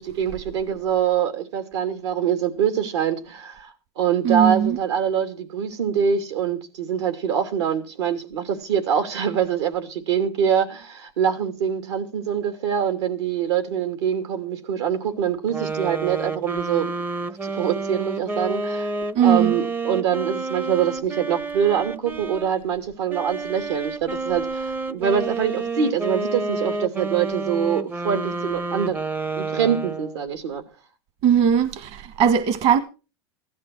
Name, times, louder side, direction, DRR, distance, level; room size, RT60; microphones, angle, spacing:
voice 1, 0.0-16.9 17.4-18.9 19.2-29.0 29.4-30.6, right 8 dB, 85° right, 2.9 m, -24 dB
voice 2, 4.2-4.8 19.1-19.6 31.2-32.8, right 8 dB, 50° right, 1.4 m, -19 dB
sound 1, 15.5-22.5 23.1-30.3, right 3 dB, 15° right, 0.6 m, -29 dB
16.0 x 12.0 x 4.6 m
supercardioid pair, 125°, 14 cm